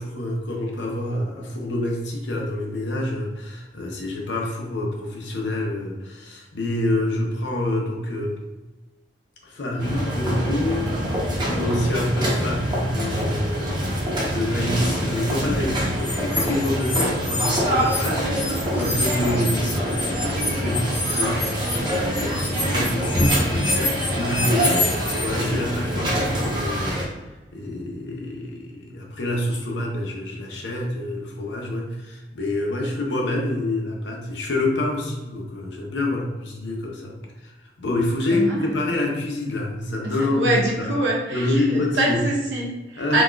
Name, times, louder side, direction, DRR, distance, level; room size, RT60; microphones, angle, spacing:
voice 1, 0.0-8.4 9.4-10.9 11.3-24.9 25.2-27.0 27.5-37.2 37.4-40.9 41.3-42.2 43.0-43.2, left 1 dB, 75° left, 0 dB, 0.7 m, -27 dB
sound 1, 9.8-27.0, equal, 25° right, 0.7 m, -25 dB
sound 2, 16.0-18.1 18.3-25.2, left 2 dB, 45° left, 1.4 m, -28 dB
voice 2, 38.3-38.8 40.0-43.2, right 1 dB, 90° right, -2 dB, 0.7 m, -25 dB
4.1 x 2.3 x 2.3 m, 1.1 s
head